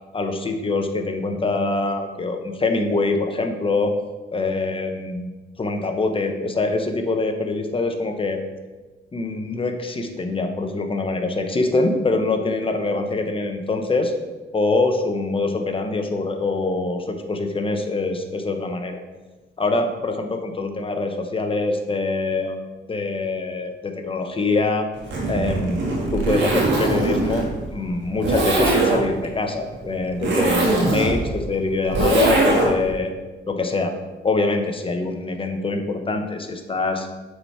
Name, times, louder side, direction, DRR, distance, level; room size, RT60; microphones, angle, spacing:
voice 1, 0.1-4.0 4.3-5.3 5.6-8.4 9.1-14.1 14.5-19.0 19.6-22.6 22.9-24.9 25.3-25.8 26.1-33.1 33.5-33.9 34.2-37.1, left 3 dB, 25° left, 5 dB, 0.9 m, -24 dB
Zipper (clothing), 25.0-32.9, right 2 dB, 70° right, 1.5 m, -22 dB
7.7 x 4.4 x 4.7 m, 1.2 s
cardioid pair, 90°, 20 cm